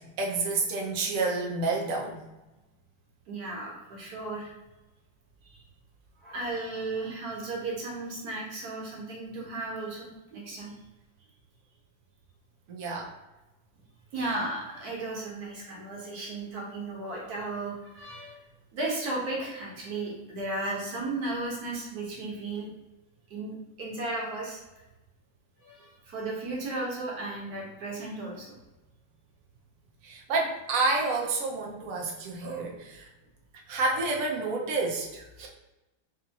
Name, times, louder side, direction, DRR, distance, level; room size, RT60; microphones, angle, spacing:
voice 1, 0.2-2.2 12.7-13.1 30.0-33.0 33.7-35.5, right 3 dB, 85° right, -1 dB, 0.7 m, -29 dB
voice 2, 3.3-4.5 5.4-5.6 6.2-10.7 14.1-18.4 18.7-22.7 23.3-24.6 25.6-28.6, right 2 dB, 55° right, -2 dB, 1.3 m, -35 dB
3.5 x 2.7 x 4.0 m, 1.0 s
omnidirectional pair, 2.3 m